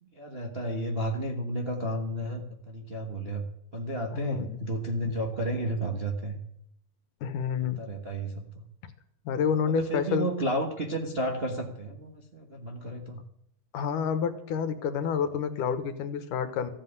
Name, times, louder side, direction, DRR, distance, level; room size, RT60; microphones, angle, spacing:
voice 1, 0.0-3.4 3.7-6.4 7.6-8.6 9.7-13.2, right 1 dB, 40° right, 1 dB, 0.8 m, -32 dB
voice 2, 4.1-4.6 7.2-7.8 9.3-10.3 13.7-16.7, left 7 dB, 90° left, 10 dB, 2.8 m, -29 dB
15.0 x 8.0 x 9.7 m, 0.72 s
omnidirectional pair, 3.6 m